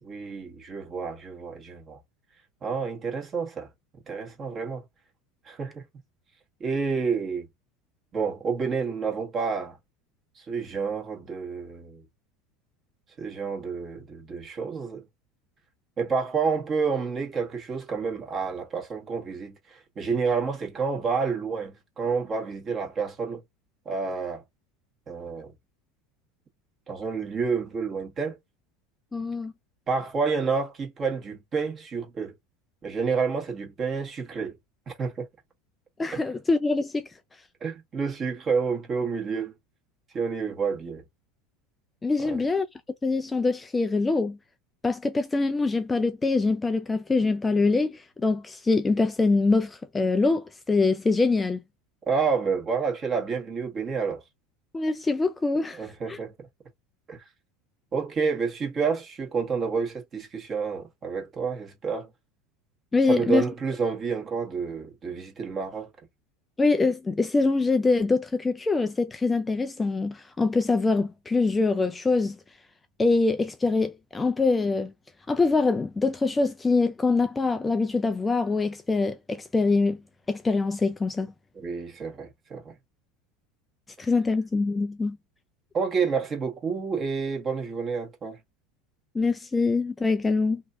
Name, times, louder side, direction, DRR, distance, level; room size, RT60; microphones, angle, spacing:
voice 1, 0.0-2.0 2.6-3.7 4.1-4.8 5.4-5.8 6.6-7.5 8.1-9.8 10.4-12.0 13.2-15.0 16.0-23.4 23.8-24.4 25.1-25.5 26.9-28.4 29.9-32.3 32.8-34.6 34.9-35.2 36.1-36.2 37.6-39.5 40.1-41.0 42.2-42.4 52.1-54.2 55.7-56.5 57.1-57.2 57.9-62.1 63.0-65.9 81.5-82.7 85.7-88.4, right 5 dB, 30° right, 1.4 m, -29 dB
voice 2, 29.1-29.5 36.0-37.1 42.0-42.7 43.0-44.4 44.8-51.6 54.7-55.8 56.1-56.2 62.9-63.4 66.6-72.4 73.0-74.9 75.3-80.0 80.3-81.3 84.0-85.2 89.1-90.6, left 3 dB, 15° left, 0.3 m, -24 dB
3.0 x 2.7 x 2.4 m
supercardioid pair, 120°, 0 cm